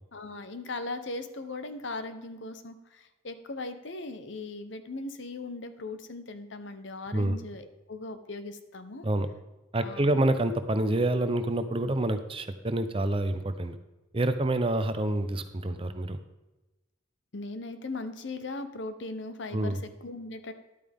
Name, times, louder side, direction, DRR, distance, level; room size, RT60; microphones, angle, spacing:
voice 1, 0.1-9.1 9.8-10.2 17.3-20.5, left 2 dB, 65° left, 10 dB, 0.9 m, -39 dB
voice 2, 9.7-13.8 14.1-16.2 19.5-19.8, right 1 dB, 30° right, 9 dB, 0.7 m, -27 dB
11.5 x 8.8 x 3.6 m, 1.0 s
head